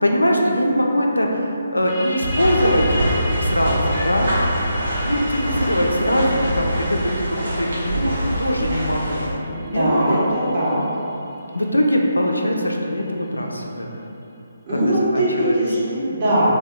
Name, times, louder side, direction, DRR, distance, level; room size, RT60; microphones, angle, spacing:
voice 1, 0.0-2.8 3.4-3.8 4.0-4.3 5.0-9.3 9.7-10.2 11.5-13.9 14.7-15.6, equal, 80° left, 0 dB, 0.3 m, -21 dB
sound 1, 1.9-13.2, left 1 dB, 30° left, 0.5 m, -36 dB
sound 2, 2.2-9.3, right 1 dB, 65° right, 0.9 m, -24 dB
voice 2, 9.5-10.8 14.7-16.5, right 1 dB, 25° right, -11 dB, 1.0 m, -20 dB
2.6 x 2.1 x 3.4 m, 2.8 s
figure-of-eight pair, 140°, 0 cm